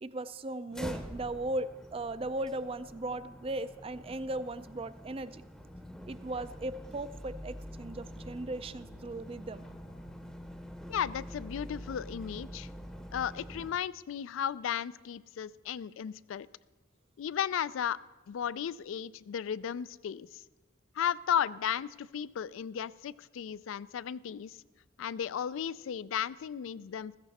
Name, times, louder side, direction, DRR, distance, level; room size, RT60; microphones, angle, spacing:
voice 1, 0.0-5.4 6.1-9.7, right 2 dB, 30° right, 14 dB, 0.4 m, -37 dB
sound 1, 0.7-13.7, equal, 5° left, 0.7 m, -46 dB
voice 2, 10.9-12.7 13.1-16.5 17.2-18.0 18.3-20.4 21.0-24.6 25.0-27.2, left 9 dB, 75° left, 19 dB, 0.3 m, -35 dB
15.0 x 14.5 x 4.1 m, 1.2 s
head